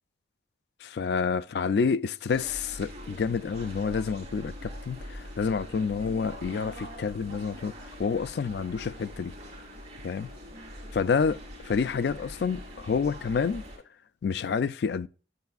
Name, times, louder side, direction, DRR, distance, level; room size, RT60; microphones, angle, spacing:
voice 1, 0.8-7.7 8.0-9.3 10.0-10.3 10.9-11.4 11.7-13.6 14.2-15.1, left 5 dB, 55° left, 0.3 m, -28 dB
sound 1, 2.3-13.8, equal, 35° right, 2.8 m, -43 dB
8.1 x 7.6 x 2.3 m
head